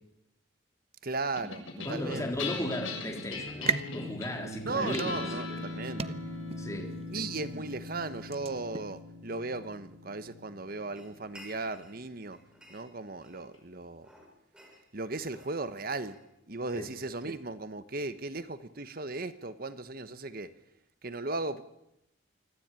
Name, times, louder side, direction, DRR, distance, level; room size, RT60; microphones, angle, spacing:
voice 1, 1.0-2.3 4.6-6.1 7.1-12.4 12.7-14.1 14.9-16.2 16.5-20.5 21.0-21.6, right 3 dB, 50° right, 12 dB, 1.2 m, -36 dB
sound 1, 1.4-12.0, left 3 dB, 90° left, 7.4 m, -40 dB
voice 2, 1.9-5.2 5.5-5.6 6.6-7.0 16.7-16.9, left 1 dB, 15° left, 2 dB, 3.7 m, -36 dB
sound 2, 3.3-9.0, right 5 dB, 30° right, 0.8 m, -39 dB
sound 3, 11.0-12.0 12.3-13.6 14.0-16.7, equal, 5° right, 6.5 m, -55 dB
25.0 x 15.5 x 9.1 m, 0.84 s
head